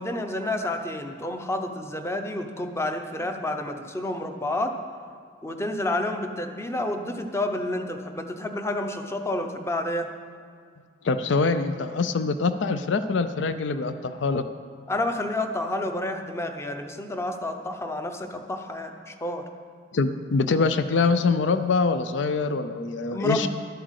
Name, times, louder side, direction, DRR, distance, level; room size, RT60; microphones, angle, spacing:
voice 1, 0.0-4.7 5.4-10.1 14.9-19.4 23.1-23.5, left 1 dB, 15° left, 5 dB, 0.7 m, -29 dB
voice 2, 11.0-14.4 19.9-23.5, left 4 dB, 70° left, 11 dB, 0.5 m, -24 dB
12.0 x 7.7 x 6.4 m, 2.2 s
head